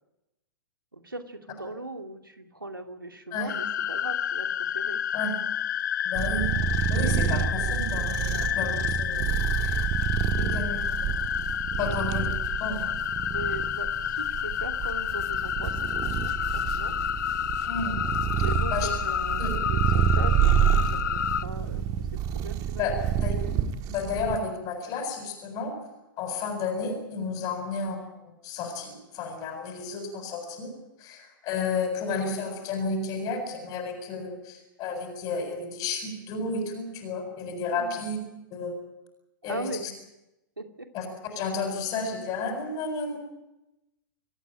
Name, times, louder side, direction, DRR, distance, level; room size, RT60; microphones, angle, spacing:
voice 1, 0.9-5.0 10.4-10.5 11.7-12.0 13.3-17.0 18.4-22.1 22.3-22.9 37.8-38.1 39.5-39.9 40.6-40.9, right 2 dB, 85° right, 6 dB, 2.6 m, -39 dB
sound 1, 3.5-21.4, left 9 dB, 60° left, 0.9 m, -30 dB
voice 2, 6.0-6.5 6.9-9.2 9.6-9.8 10.4-10.8 11.8-12.3 12.6-12.9 17.7-18.1 18.7-18.9 19.4-19.5 22.8-23.4 23.9-25.8 26.2-30.7 31.0-38.2 38.5-38.8 39.4-39.9 40.9-43.2, left 4 dB, 35° left, 3 dB, 7.4 m, -32 dB
sound 2, 6.2-24.4, right 9 dB, 35° right, 1.6 m, -28 dB
24.5 x 16.5 x 9.0 m, 0.92 s
figure-of-eight pair, 105°, 11 cm